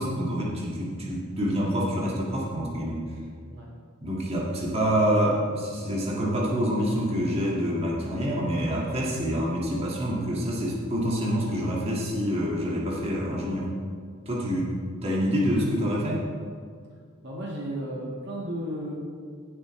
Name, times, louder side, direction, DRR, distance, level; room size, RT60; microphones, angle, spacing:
voice 1, 0.0-3.0 4.0-13.7 14.3-14.7 15.0-16.2, equal, 30° right, -4 dB, 1.9 m, -27 dB
voice 2, 17.2-18.9, equal, 55° right, -3 dB, 1.6 m, -33 dB
16.0 x 7.7 x 3.2 m, 2.1 s
head